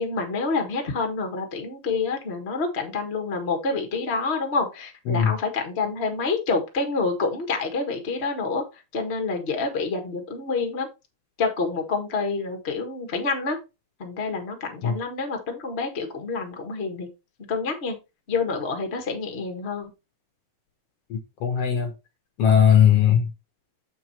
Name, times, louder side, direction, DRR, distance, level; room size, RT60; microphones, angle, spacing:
voice 1, 0.0-8.6 8.9-10.9 11.4-13.6 14.0-17.1 17.5-18.0 18.3-19.9, left 4 dB, 30° left, 1.2 m, -27 dB
voice 2, 21.1-21.9 22.4-23.3, left 8 dB, 65° left, 1.8 m, -19 dB
7.4 x 4.7 x 4.2 m
omnidirectional pair, 3.4 m